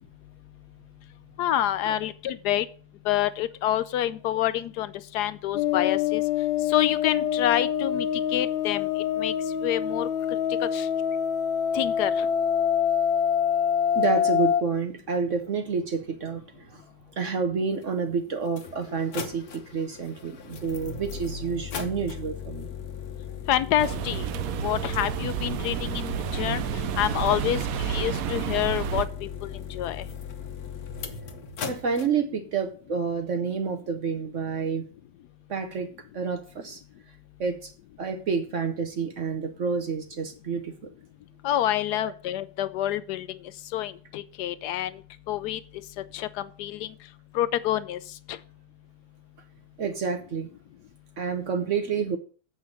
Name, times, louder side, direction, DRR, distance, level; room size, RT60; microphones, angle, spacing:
voice 1, 1.4-2.7 3.1-6.2 6.7-8.1 8.3-8.9 9.2-9.3 9.6-10.1 10.6-10.9 11.7-12.3 23.5-24.2 24.6-26.6 27.0-30.0 41.4-43.3 43.7-45.0 45.3-45.6 46.1-46.3 46.6-46.9 47.3-48.0 48.3-48.4, left 12 dB, 70° left, 15 dB, 1.0 m, -27 dB
sound 1, 5.5-14.6, left 8 dB, 90° left, 1.5 m, -25 dB
voice 2, 13.9-16.8 17.1-22.7 26.4-26.6 27.3-27.4 31.7-34.9 35.5-36.8 37.4-37.7 38.0-40.7 42.0-42.1 49.8-50.5 51.2-52.2, right 5 dB, 60° right, 8 dB, 0.8 m, -29 dB
sound 2, 17.8-17.9 18.5-32.1, left 7 dB, 55° left, 1.4 m, -38 dB
sound 3, 23.8-29.1, right 11 dB, 90° right, 0.7 m, -30 dB
7.8 x 5.8 x 6.4 m, 0.41 s
omnidirectional pair, 2.2 m